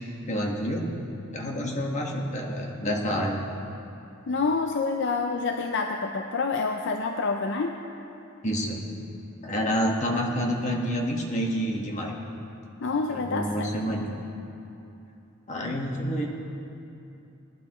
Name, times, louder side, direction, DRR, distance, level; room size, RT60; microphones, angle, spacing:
voice 1, 0.3-0.9 1.3-3.4 8.4-8.9 9.4-12.2 13.1-14.1 15.5-16.3, equal, 35° left, -1 dB, 1.5 m, -28 dB
voice 2, 1.4-1.8 4.3-7.8 12.8-13.7, left 4 dB, 60° left, 4 dB, 0.5 m, -28 dB
20.0 x 11.5 x 3.1 m, 2.8 s
head